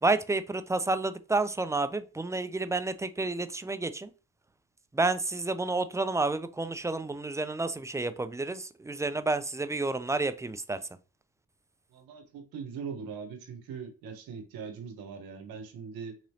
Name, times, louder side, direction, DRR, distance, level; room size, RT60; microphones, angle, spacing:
voice 1, 0.0-4.1 4.9-10.8, right 3 dB, 10° right, 0.3 m, -30 dB
voice 2, 11.9-16.2, right 6 dB, 85° right, 1.0 m, -41 dB
3.9 x 3.0 x 2.7 m
supercardioid pair, 55°, 35 cm